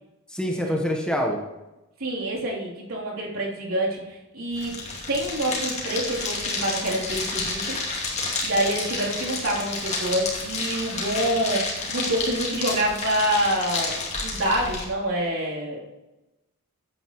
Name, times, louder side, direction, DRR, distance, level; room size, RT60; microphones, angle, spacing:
voice 1, 0.3-1.4, equal, 5° left, 0 dB, 1.0 m, -25 dB
voice 2, 2.0-4.7 5.1-7.8 8.4-15.8, right 1 dB, 75° right, -4 dB, 3.3 m, -27 dB
sound 1, 4.5-14.8, left 3 dB, 30° left, 2.5 m, -30 dB
14.5 x 9.2 x 3.1 m, 1.0 s
head